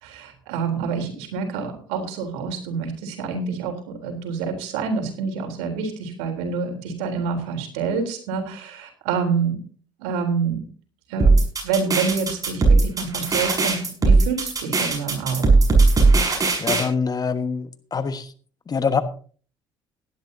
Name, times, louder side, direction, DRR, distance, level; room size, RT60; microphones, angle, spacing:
voice 1, 0.0-9.6 10.0-10.6 11.1-11.3 11.6-15.5, right 5 dB, 80° right, 3.7 m, -27 dB
sound 1, 11.2-16.8, right 3 dB, 30° right, 6.4 m, -17 dB
voice 2, 16.6-18.3 18.7-19.0, left 5 dB, 35° left, 1.4 m, -24 dB
17.5 x 11.5 x 2.8 m
hypercardioid pair, 65°, 11 cm